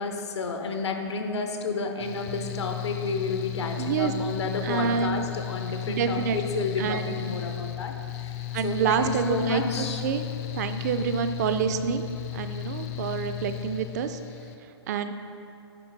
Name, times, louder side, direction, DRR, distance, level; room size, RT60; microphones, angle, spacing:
voice 1, 0.0-8.0 8.2-8.3 8.6-10.0, left 4 dB, 80° left, 5 dB, 0.9 m, -31 dB
Mechanical fan, 2.0-14.6, left 13 dB, 35° left, 0.4 m, -35 dB
voice 2, 3.8-4.1 4.6-5.3 5.9-7.2 8.5-10.3 10.5-12.0 12.3-14.2 14.9-15.1, right 7 dB, 40° right, 9 dB, 0.3 m, -27 dB
8.9 x 4.2 x 4.0 m, 2.7 s
hypercardioid pair, 150°, 14 cm